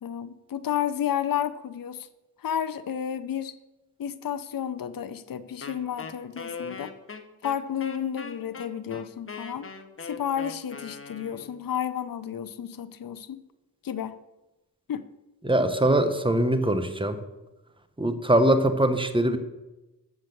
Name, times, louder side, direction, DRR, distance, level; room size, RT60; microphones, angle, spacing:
voice 1, 0.0-2.1 2.4-3.5 4.0-6.9 7.4-9.7 10.0-13.4 13.8-14.2 14.9-15.0, left 9 dB, 60° left, 11 dB, 0.6 m, -31 dB
Wind instrument woodwind instrument, 5.6-11.7, left 4 dB, 35° left, 0.9 m, -40 dB
voice 2, 15.4-17.2 18.0-19.4, right 1 dB, 15° right, 9 dB, 1.0 m, -22 dB
7.4 x 6.1 x 6.8 m, 1.0 s
cardioid pair, 65°, 38 cm